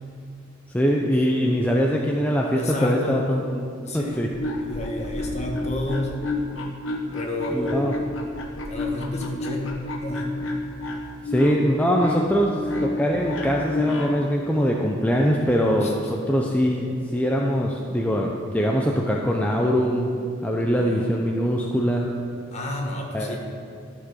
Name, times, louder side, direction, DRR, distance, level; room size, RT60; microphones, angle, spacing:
voice 1, 0.7-3.7 3.9-4.3 7.5-7.9 11.2-20.1 20.4-22.1 23.1-23.4, equal, 5° left, -1 dB, 0.6 m, -22 dB
voice 2, 2.5-3.4 3.8-4.3 4.6-6.2 7.1-7.9 8.7-10.4 15.8-15.9 20.7-21.1 22.5-23.4, left 1 dB, 35° left, 0 dB, 1.5 m, -30 dB
sound 1, 4.1-14.3, left 2 dB, 70° left, 1.2 m, -31 dB
12.5 x 6.0 x 6.6 m, 2.4 s
head